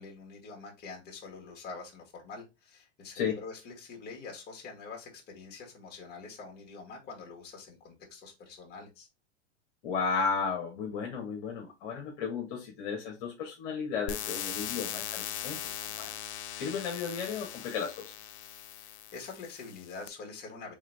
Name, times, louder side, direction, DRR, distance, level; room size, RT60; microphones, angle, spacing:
voice 1, 0.0-9.1 18.7-20.7, left 4 dB, 25° left, 1.7 m, -45 dB
voice 2, 9.8-15.7 16.0-16.1 16.5-18.1, left 6 dB, 50° left, 1.4 m, -34 dB
sound 1, 14.1-20.1, left 11 dB, 65° left, 0.6 m, -40 dB
3.7 x 3.5 x 3.3 m
hypercardioid pair, 120°, 36 cm